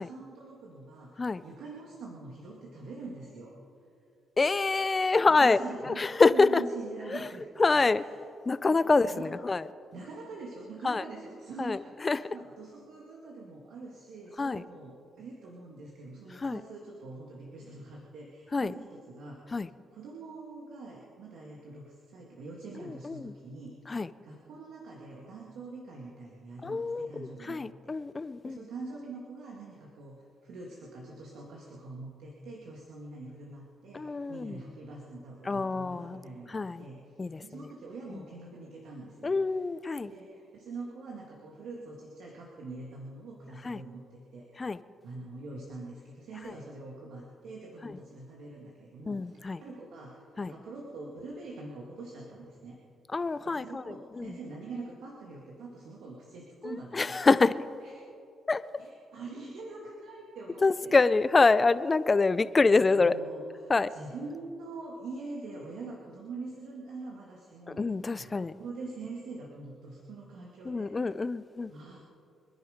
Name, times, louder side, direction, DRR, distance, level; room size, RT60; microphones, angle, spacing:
voice 1, 0.0-3.6 5.2-8.1 8.7-9.4 9.9-19.6 19.9-27.9 28.4-39.8 40.1-44.7 45.0-52.8 53.4-57.2 57.8-58.0 58.8-61.0 62.7-71.1 71.7-72.0, right 3 dB, 80° right, -2 dB, 2.1 m, -44 dB
voice 2, 4.4-5.6 6.0-6.6 7.6-8.0 8.5-9.1 9.4-9.6 10.8-11.0 11.6-11.8 12.0-12.2 14.4-14.6 16.4-16.6 18.5-18.7 19.5-19.7 23.9-24.1 26.6-28.6 34.0-34.6 35.5-36.2 36.5-36.8 37.2-37.4 39.2-40.1 43.7-43.8 44.6-44.8 49.1-49.6 50.4-50.5 53.1-53.8 54.2-54.3 56.6-57.6 58.5-58.6 60.6-63.1 63.7-63.9 67.8-68.5 70.7-71.7, left 3 dB, 25° left, 15 dB, 0.5 m, -25 dB
24.5 x 11.0 x 5.2 m, 2.6 s
cardioid pair, 90°, 0 cm